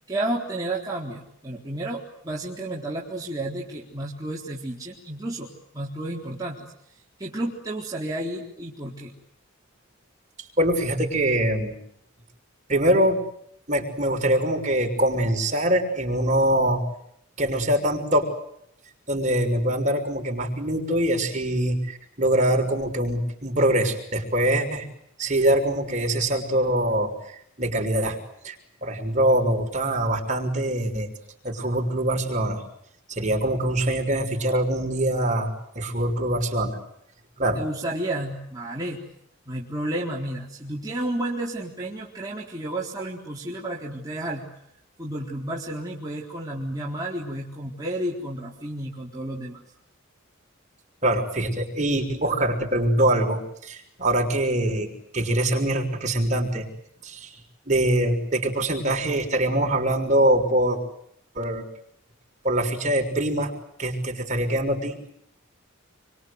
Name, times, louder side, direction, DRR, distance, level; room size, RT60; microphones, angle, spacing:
voice 1, 0.1-5.5 5.7-6.7 7.2-9.1 37.6-39.0 39.5-44.4 45.0-49.6, right 1 dB, 20° right, -5 dB, 4.1 m, -31 dB
voice 2, 10.6-11.7 12.7-13.2 13.7-16.8 17.4-18.3 19.1-24.9 25.2-27.1 27.6-28.2 28.4-28.5 28.8-31.1 31.4-32.6 33.2-36.8 37.4-37.6 51.0-56.7 57.0-57.3 57.7-60.8 61.3-61.6 62.4-63.5 63.8-65.1, right 1 dB, 35° right, 2 dB, 6.3 m, -23 dB
28.5 x 25.0 x 8.2 m, 0.73 s
head